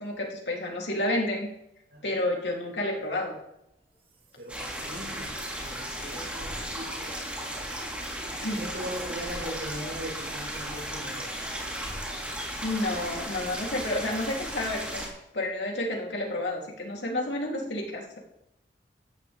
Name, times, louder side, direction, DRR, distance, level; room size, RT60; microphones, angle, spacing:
voice 1, 0.0-1.5 2.0-3.4 8.4-8.6 12.6-15.1 15.3-18.2, left 1 dB, 80° left, -1 dB, 3.3 m, -30 dB
voice 2, 1.9-2.2 4.4-5.3 5.6-7.7 8.5-12.3, equal, 80° right, -3 dB, 5.5 m, -40 dB
sound 1, 3.7-6.0 6.3-11.4 11.8-12.5, equal, 30° right, 2.0 m, -49 dB
sound 2, 4.5-15.1, equal, 10° right, 3.8 m, -35 dB
17.0 x 13.5 x 3.6 m, 0.84 s
head